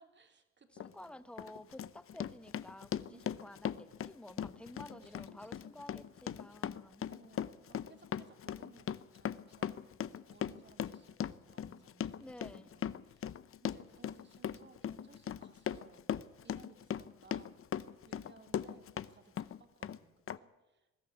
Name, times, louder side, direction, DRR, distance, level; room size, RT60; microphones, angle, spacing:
voice 1, 0.0-1.3 3.1-3.2 3.8-4.0 4.7-5.8 7.1-12.2 12.4-13.2 13.6-16.0 16.4-20.9, right 4 dB, 35° right, 7 dB, 3.2 m, -62 dB
Run, 0.8-0.9 1.4-19.1 19.4-20.0 20.3-20.4, left 9 dB, 45° left, 0.7 m, -39 dB
voice 2, 0.8-7.0 12.2-12.7, left 1 dB, 5° left, 13 dB, 1.0 m, -52 dB
21.0 x 13.0 x 9.5 m, 1.1 s
cardioid pair, 90°, 30 cm